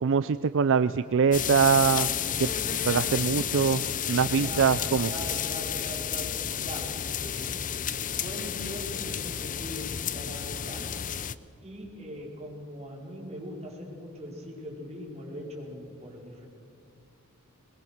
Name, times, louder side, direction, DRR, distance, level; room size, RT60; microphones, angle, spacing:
voice 1, 0.0-2.1 2.4-5.1, right 6 dB, 60° right, 14 dB, 0.5 m, -24 dB
sound 1, 1.3-11.3, left 9 dB, 35° left, 0.6 m, -31 dB
voice 2, 4.4-7.6 8.1-10.9 11.6-16.4, equal, 30° right, -2 dB, 4.8 m, -41 dB
22.0 x 21.5 x 6.6 m, 2.4 s
head